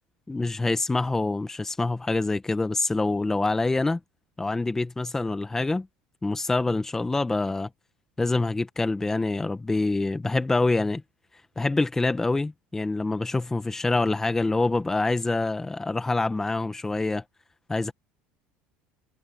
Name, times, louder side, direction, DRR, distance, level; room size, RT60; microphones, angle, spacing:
voice 1, 0.3-4.0 4.4-5.9 6.2-7.7 8.2-11.0 11.6-17.2 17.7-17.9, left 2 dB, 10° left, 1.3 m, -26 dB
supercardioid pair, 120°, 4 cm